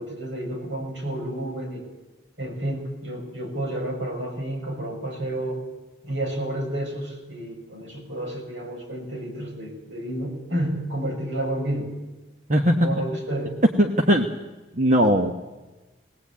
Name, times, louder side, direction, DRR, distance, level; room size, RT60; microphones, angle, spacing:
voice 1, 0.0-1.9 2.4-5.6 6.0-11.9 12.8-13.6, right 1 dB, 75° right, 0 dB, 6.7 m, -30 dB
voice 2, 12.5-12.9 13.8-14.3 14.7-15.3, equal, 40° right, 4 dB, 1.3 m, -19 dB
20.5 x 18.5 x 8.6 m, 1.1 s
head